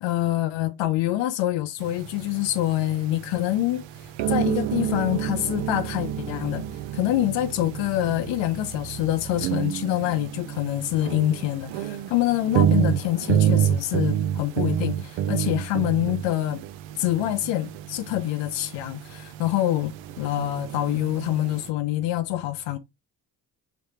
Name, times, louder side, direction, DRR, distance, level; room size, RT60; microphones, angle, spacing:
voice 1, 0.0-6.6 6.9-16.6 17.0-22.8, left 14 dB, 60° left, 0.6 m, -26 dB
sound 1, 1.8-21.7, right 10 dB, 65° right, 0.7 m, -29 dB
5.0 x 3.3 x 2.9 m
hypercardioid pair, 50°, 49 cm